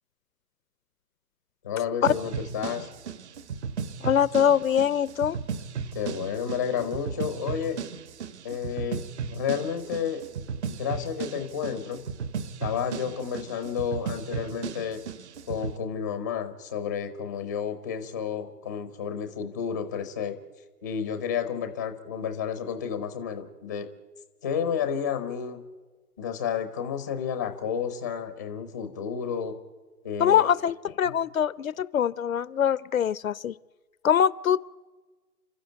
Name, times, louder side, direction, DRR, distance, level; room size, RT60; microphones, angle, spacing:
voice 1, 1.6-2.9 5.9-7.8 8.4-9.0 9.3-10.2 10.7-12.1 12.6-15.0 15.5-20.4 20.8-23.9 24.4-25.6 26.2-29.6 30.0-30.5, left 7 dB, 10° left, 8 dB, 0.6 m, -31 dB
sound 1, 2.1-15.8, right 6 dB, 45° right, 1.3 m, -35 dB
voice 2, 4.0-5.4 30.2-33.5 34.0-34.6, left 9 dB, 60° left, 20 dB, 0.6 m, -23 dB
29.0 x 13.0 x 9.2 m, 1.3 s
hypercardioid pair, 155°, 47 cm